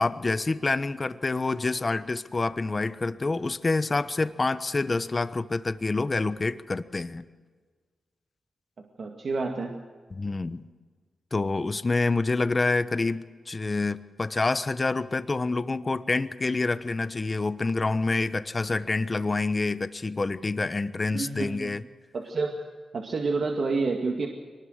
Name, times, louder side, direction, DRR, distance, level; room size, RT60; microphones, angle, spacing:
voice 1, 0.0-7.2 10.1-10.6 11.3-21.8, left 3 dB, 35° left, 13 dB, 1.1 m, -27 dB
voice 2, 9.0-9.7 21.1-21.7 22.1-22.7 22.9-24.3, right 3 dB, 60° right, 2 dB, 2.2 m, -29 dB
24.0 x 20.0 x 6.5 m, 1.5 s
cardioid pair, 70°, 0 cm